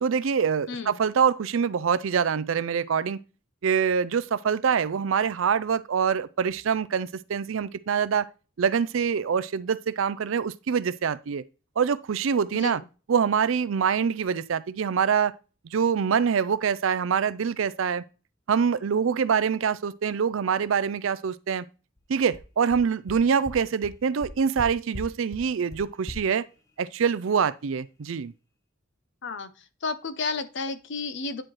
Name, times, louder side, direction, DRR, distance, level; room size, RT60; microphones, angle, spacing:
voice 1, 0.0-3.2 3.6-8.3 8.6-11.4 11.8-12.8 13.1-15.3 15.7-18.0 18.5-21.6 22.1-26.4 26.8-28.3, right 6 dB, 75° right, 0.4 m, -25 dB
voice 2, 0.7-1.0 12.5-12.9 29.2-29.5 29.8-31.4, left 4 dB, 60° left, 0.7 m, -32 dB
sound 1, 22.0-22.1 22.3-22.4 22.7-22.8 23.1-23.2 23.4-23.5 23.8-23.9 24.2-24.6 24.9-25.0 25.3-25.4 25.7-25.8 26.1-26.2, left 1 dB, 15° left, 0.9 m, -38 dB
9.8 x 4.4 x 3.1 m
head